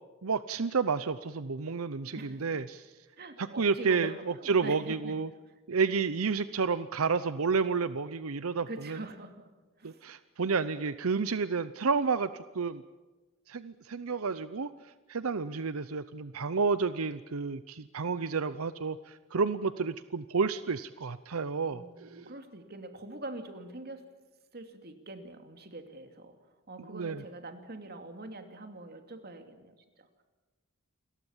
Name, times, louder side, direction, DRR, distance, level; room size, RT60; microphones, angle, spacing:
voice 1, 0.2-2.9 3.4-5.3 5.7-9.0 9.8-12.8 13.5-22.3 26.9-27.2, right 5 dB, 85° right, 13 dB, 0.7 m, -31 dB
voice 2, 2.1-2.6 3.2-5.2 8.7-9.5 9.8-10.0 21.7-24.1 24.5-26.4 26.7-30.2, right 2 dB, 50° right, 6 dB, 2.8 m, -44 dB
29.0 x 22.0 x 7.3 m, 1.2 s
head